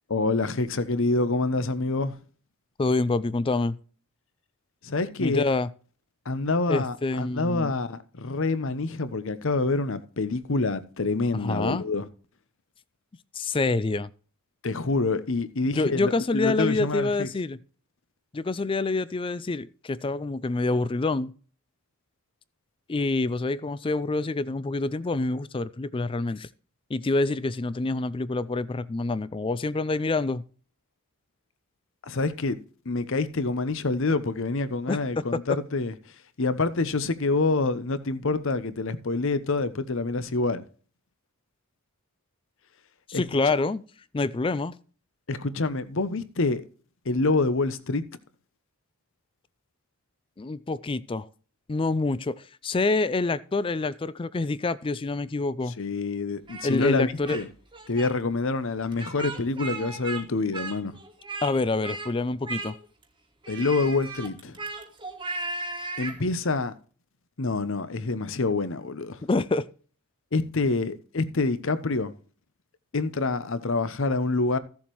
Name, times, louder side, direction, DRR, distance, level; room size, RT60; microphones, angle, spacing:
voice 1, 0.1-2.2 4.8-5.4 6.3-12.1 14.6-17.3 32.0-32.6 32.9-35.9 36.4-40.6 43.1-43.2 45.3-46.6 47.0-48.0 55.8-57.5 57.9-60.9 63.5-64.6 66.0-66.7 67.4-69.2 70.3-72.1 72.9-74.6, left 3 dB, 60° left, 0.8 m, -27 dB
voice 2, 2.8-3.8 5.2-5.7 6.7-7.7 11.4-11.8 13.3-14.1 15.7-17.6 18.3-21.3 22.9-26.5 26.9-30.4 34.9-35.2 43.1-43.8 44.1-44.8 50.4-51.3 51.7-55.7 56.6-57.4 61.4-62.8 69.2-69.7, left 3 dB, 25° left, 0.3 m, -26 dB
Speech, 56.5-57.4 57.7-58.1 58.9-60.2 60.5-61.5 61.8-62.1 62.4-63.0 63.4-66.2, right 3 dB, 20° right, 1.4 m, -36 dB
15.0 x 7.1 x 3.1 m
head